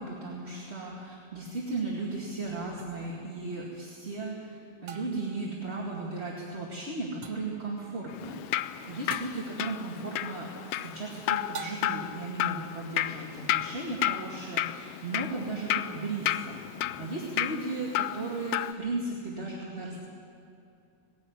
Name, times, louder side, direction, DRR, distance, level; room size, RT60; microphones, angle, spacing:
voice 1, 0.0-10.5 10.8-20.0, right 3 dB, 25° right, -3 dB, 2.0 m, -36 dB
sound 1, 2.8-2.9 4.9-5.4 7.2-7.6 9.1-9.5 11.5-12.2, right 5 dB, 60° right, 2.2 m, -43 dB
Drip, 8.1-18.7, left 13 dB, 85° left, 1.4 m, -32 dB
19.0 x 16.5 x 9.7 m, 2.6 s
omnidirectional pair, 3.5 m